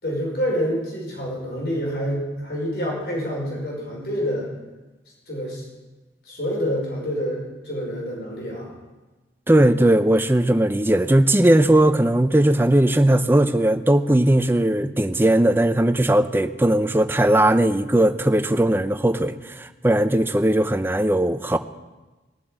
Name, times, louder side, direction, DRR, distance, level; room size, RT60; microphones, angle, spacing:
voice 1, 0.0-4.5 5.3-5.6 6.2-8.8, equal, 65° left, -3 dB, 5.4 m, -27 dB
voice 2, 9.5-21.6, right 1 dB, 10° right, 10 dB, 0.6 m, -18 dB
19.5 x 7.6 x 8.9 m, 1.2 s
head